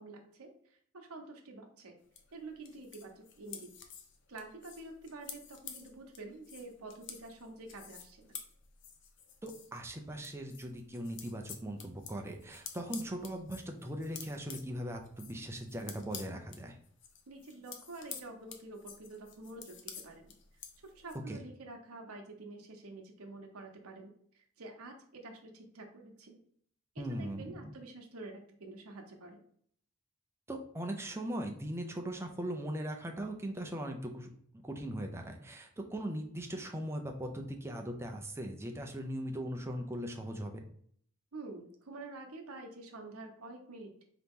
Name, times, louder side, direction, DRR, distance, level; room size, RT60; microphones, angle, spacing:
voice 1, 0.0-2.0 2.3-3.7 4.3-8.4 17.3-20.3 20.8-26.4 26.9-29.4 41.3-43.9, right 2 dB, 75° right, 3 dB, 0.8 m, -48 dB
sound 1, 2.1-9.8 10.1-21.2, left 7 dB, 55° left, 0.6 m, -50 dB
voice 2, 9.4-16.8 21.3-21.4 27.0-27.7 30.5-34.3 34.5-40.6, right 1 dB, 10° right, 3 dB, 0.4 m, -39 dB
3.9 x 2.9 x 3.6 m, 0.63 s
head